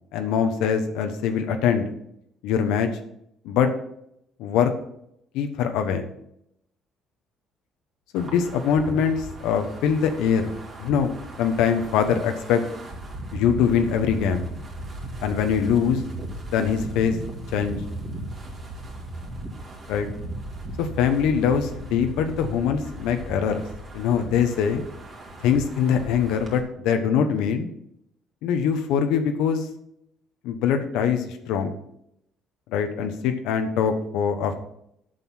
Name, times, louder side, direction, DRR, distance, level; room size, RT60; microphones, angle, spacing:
voice 1, 0.1-1.9 2.4-2.9 3.4-3.7 4.4-4.7 5.3-6.0 8.1-12.6 13.3-14.5 15.2-16.0 16.5-17.2 17.5-17.8 19.9-20.1 20.8-23.6 23.9-24.8 25.4-27.7 28.4-29.7 30.4-31.7 32.7-34.6, left 7 dB, 85° left, 7 dB, 1.1 m, -23 dB
Wind, 8.1-26.6, right 2 dB, 35° right, 2.3 m, -37 dB
7.6 x 6.8 x 5.9 m, 0.75 s
cardioid pair, 140°, 0 cm